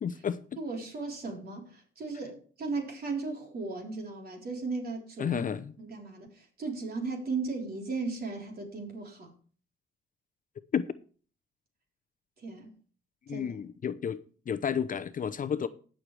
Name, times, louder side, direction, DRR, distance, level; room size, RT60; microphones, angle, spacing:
voice 1, 0.0-0.4 5.2-5.7 10.7-10.9 13.3-15.7, left 7 dB, 40° left, 0.7 m, -31 dB
voice 2, 0.6-5.4 5.8-9.3 12.4-12.7 13.3-13.5, right 3 dB, 50° right, 3.8 m, -36 dB
19.0 x 6.5 x 3.3 m
cardioid pair, 90°, 20 cm